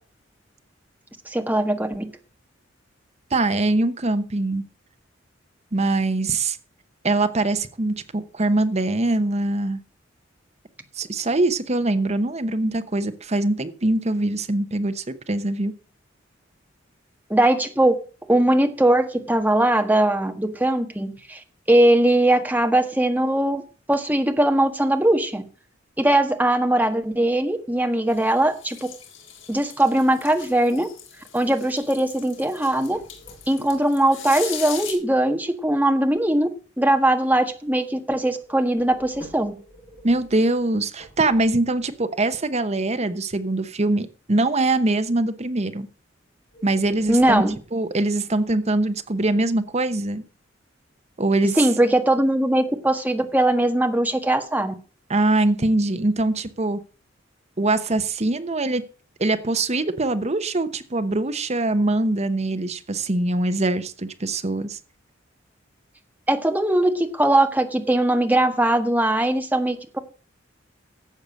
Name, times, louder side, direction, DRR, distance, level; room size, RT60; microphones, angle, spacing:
voice 1, 1.3-2.1 17.3-17.9 18.3-21.4 21.7-23.6 23.9-25.4 26.0-28.8 29.5-30.9 31.3-33.0 33.5-36.5 36.8-39.5 47.1-47.6 51.6-54.7 66.3-70.0, right 1 dB, 10° right, 6 dB, 1.5 m, -20 dB
voice 2, 3.3-4.6 5.7-6.6 7.0-9.8 11.0-15.7 40.0-45.9 46.6-47.4 47.7-50.2 51.2-51.6 55.1-56.8 57.6-58.8 59.2-64.8, right 2 dB, 35° right, 11 dB, 1.0 m, -23 dB
sound 1, 28.1-34.9, left 8 dB, 80° left, 4.3 m, -39 dB
sound 2, 32.6-33.9 38.4-42.0 46.5-47.7, equal, 45° left, 7.0 m, -47 dB
12.0 x 7.9 x 6.4 m, 0.38 s
head